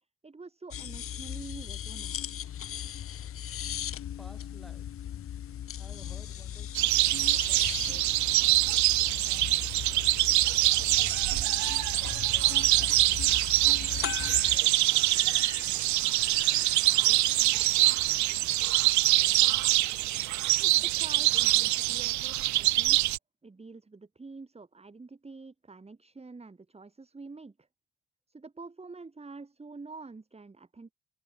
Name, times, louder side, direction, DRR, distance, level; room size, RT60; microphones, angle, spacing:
voice 1, 0.2-2.2 20.6-23.1 23.4-27.7 28.3-30.9, right 3 dB, 20° right, 2.0 m, -47 dB
sound 1, 0.7-14.6, left 10 dB, 45° left, 0.7 m, -38 dB
voice 2, 4.2-5.2 5.8-8.6 9.0-10.2 10.4-12.2 12.6-13.3 14.4-16.3 17.0-18.8 19.2-19.6, equal, ahead, 6.5 m, -58 dB
sound 2, 6.7-23.2, right 17 dB, 70° right, 0.5 m, -25 dB
sound 3, 11.9-19.4, left 14 dB, 80° left, 4.8 m, -52 dB
cardioid pair, 90°, 30 cm